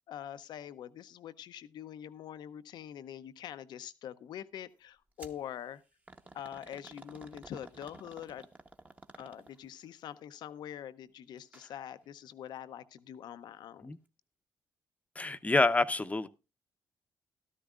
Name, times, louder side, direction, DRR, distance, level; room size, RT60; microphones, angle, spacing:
voice 1, 0.1-5.8 6.3-8.4 9.2-14.0, left 10 dB, 75° left, 0.7 m, -44 dB
sound 1, 5.2-5.4 6.1-9.8 11.4-11.7 12.0-12.1 13.0-13.1, right 2 dB, 20° right, 1.0 m, -52 dB
voice 2, 15.2-16.3, left 2 dB, 20° left, 0.7 m, -27 dB
14.0 x 12.5 x 2.4 m
cardioid pair, 80°, 7 cm